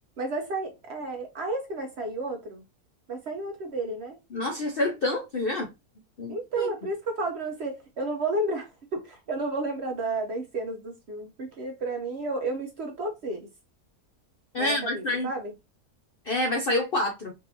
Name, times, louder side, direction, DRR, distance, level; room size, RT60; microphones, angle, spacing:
voice 1, 0.2-2.6 3.1-4.2 6.3-13.5 14.6-15.5, right 2 dB, 55° right, 0.8 m, -32 dB
voice 2, 4.3-5.7 6.2-6.7 14.5-15.3 16.2-17.3, left 1 dB, 60° left, 0.6 m, -27 dB
3.9 x 2.6 x 2.7 m
omnidirectional pair, 1.6 m